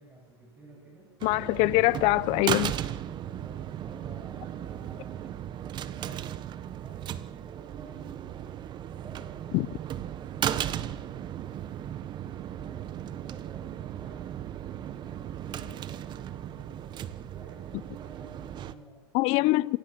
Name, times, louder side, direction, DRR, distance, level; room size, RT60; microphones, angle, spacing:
voice 1, 0.0-1.1 3.2-8.6 8.9-9.6 9.9-11.1 11.5-19.0 19.4-19.5, right 1 dB, 15° right, 7.0 m, -52 dB
voice 2, 1.2-2.7 9.5-9.7 19.1-19.8, left 21 dB, 50° left, 0.7 m, -23 dB
sound 1, 1.2-18.7, right 11 dB, 35° right, 1.1 m, -36 dB
27.5 x 23.0 x 6.0 m
hypercardioid pair, 120°, 14 cm